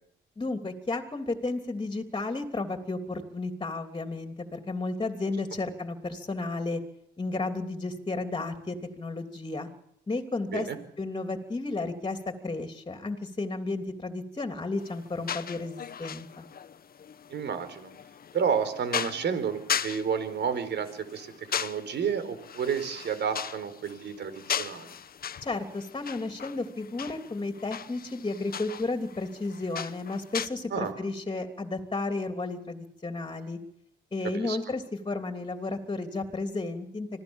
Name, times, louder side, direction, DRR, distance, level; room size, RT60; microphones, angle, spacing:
voice 1, 0.4-6.8 7.2-9.7 10.1-10.7 11.0-16.4 25.4-33.6 34.1-37.2, left 3 dB, 25° left, 6 dB, 3.1 m, -33 dB
sound 1, 14.8-30.5, left 8 dB, 50° left, 1.2 m, -38 dB
voice 2, 17.3-17.9 18.3-25.0 30.7-30.9 34.3-34.6, right 7 dB, 60° right, 11 dB, 4.3 m, -31 dB
25.5 x 17.0 x 7.3 m, 0.75 s
cardioid pair, 90°, 20 cm